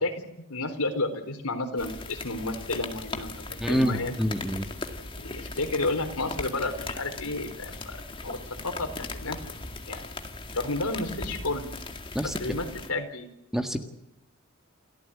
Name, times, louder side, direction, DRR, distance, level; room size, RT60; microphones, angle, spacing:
voice 1, 0.5-4.1 5.2-8.0 8.2-10.1 10.5-11.6 12.2-13.3, left 2 dB, 85° left, 7 dB, 4.1 m, -31 dB
sound 1, 1.8-12.9, left 3 dB, 25° left, 2.0 m, -38 dB
voice 2, 3.6-4.7 12.1-12.4 13.5-13.8, equal, ahead, 6 dB, 1.7 m, -26 dB
29.5 x 14.0 x 8.6 m, 0.86 s
head